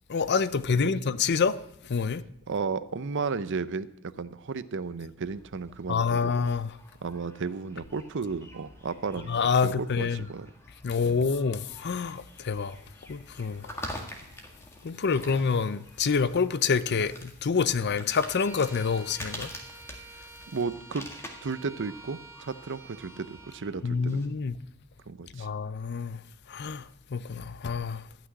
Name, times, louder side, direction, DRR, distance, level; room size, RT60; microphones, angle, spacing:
voice 1, 0.1-1.6 1.9-2.2 5.9-6.7 9.3-10.2 10.8-12.8 13.1-13.9 14.8-19.5 23.8-24.6 25.3-26.2 26.5-26.8 27.1-28.0, left 5 dB, 50° left, 0.5 m, -27 dB
voice 2, 2.5-6.3 7.0-9.4 9.6-10.5 11.0-11.3 20.5-21.1 21.4-24.2 25.1-25.5, right 4 dB, 55° right, 0.6 m, -34 dB
sound 1, 5.3-24.3, left 1 dB, 10° left, 1.8 m, -47 dB
Bowed string instrument, 18.3-23.7, right 3 dB, 10° right, 0.9 m, -49 dB
14.0 x 6.1 x 9.7 m
head